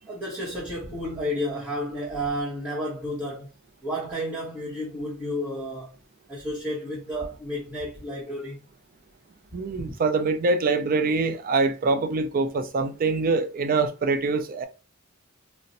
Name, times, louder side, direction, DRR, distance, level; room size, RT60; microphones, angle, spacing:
voice 1, 0.1-3.5 3.8-6.0 6.3-8.6 9.7-10.0, equal, 5° right, 1.0 m, -31 dB
voice 2, 9.5-14.6, right 3 dB, 40° right, 0.4 m, -24 dB
2.5 x 2.1 x 4.0 m
head